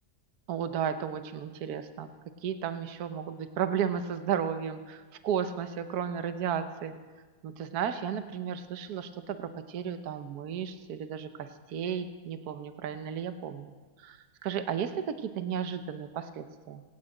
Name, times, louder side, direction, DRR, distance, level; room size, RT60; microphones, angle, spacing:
voice 1, 0.5-2.1 2.4-6.9 7.4-14.2 14.4-16.8, right 8 dB, 70° right, 9 dB, 1.4 m, -34 dB
19.0 x 8.6 x 8.8 m, 1.4 s
omnidirectional pair, 1.7 m